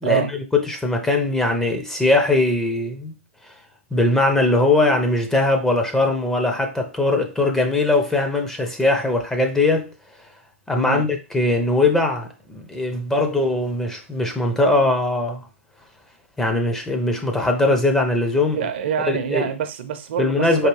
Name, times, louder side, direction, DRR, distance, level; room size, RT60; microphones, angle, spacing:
voice 1, 0.0-3.1 3.9-9.9 10.7-15.4 16.4-18.6 19.1-19.5 20.2-20.7, left 2 dB, 5° left, 0.6 m, -20 dB
voice 2, 10.7-11.0 18.5-20.7, right 8 dB, 55° right, 0.6 m, -26 dB
4.6 x 2.3 x 3.2 m
figure-of-eight pair, 115°, 7 cm